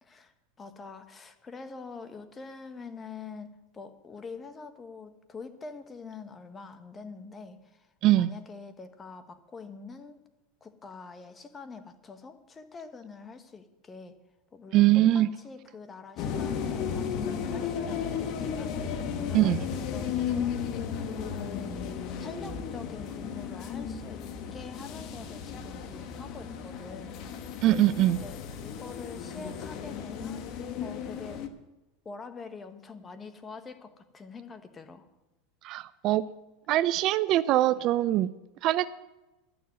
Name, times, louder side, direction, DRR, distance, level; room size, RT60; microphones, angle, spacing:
voice 1, 0.0-10.2 10.6-14.2 14.5-20.8 21.4-27.4 28.1-28.4 28.6-31.4 32.0-35.1, left 4 dB, 20° left, 9 dB, 1.3 m, -45 dB
voice 2, 14.7-15.3 19.3-19.6 27.6-28.2 35.6-36.2 36.7-38.3 38.6-38.9, right 14 dB, 50° right, 16 dB, 0.4 m, -22 dB
sound 1, 16.2-31.5, left 7 dB, 50° left, 1.2 m, -34 dB
11.5 x 7.0 x 9.5 m, 1.0 s
hypercardioid pair, 110°, 0 cm